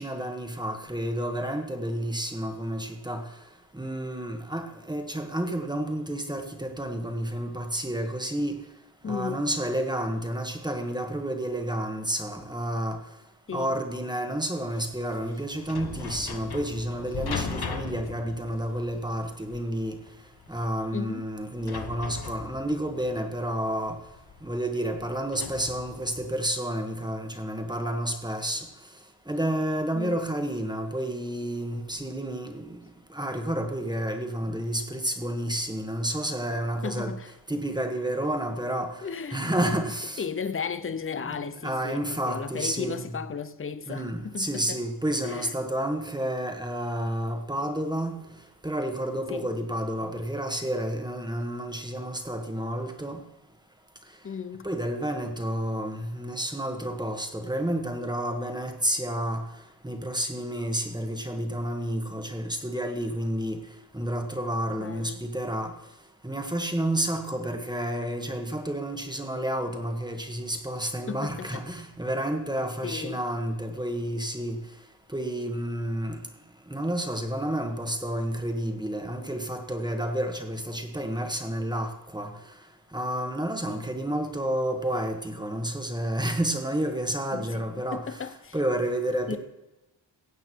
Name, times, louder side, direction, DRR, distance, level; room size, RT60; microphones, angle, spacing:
voice 1, 0.0-3.3 3.7-8.6 9.0-13.0 13.5-19.9 20.5-24.0 24.4-28.6 29.3-32.8 33.1-37.1 37.5-38.9 39.3-40.2 41.2-43.0 43.9-48.2 48.6-53.2 54.6-59.4 59.8-63.6 63.9-65.7 66.2-74.6 75.1-76.2 76.7-82.3 82.9-88.2 88.5-89.4, right 1 dB, 10° right, 1.4 m, -30 dB
voice 2, 9.0-9.5 13.5-13.7 20.9-21.3 29.9-30.2 36.8-37.3 39.0-39.6 40.2-44.8 45.2-45.6 49.3-49.5 54.2-54.7 64.8-65.2 71.1-71.6 72.8-73.2 83.7-83.9 87.3-87.6 87.9-88.6 89.3-89.4, left 6 dB, 30° left, 0.7 m, -35 dB
sound 1, 14.6-26.3, left 5 dB, 55° left, 1.3 m, -39 dB
16.5 x 8.8 x 4.6 m
wide cardioid pair, 130°, 44 cm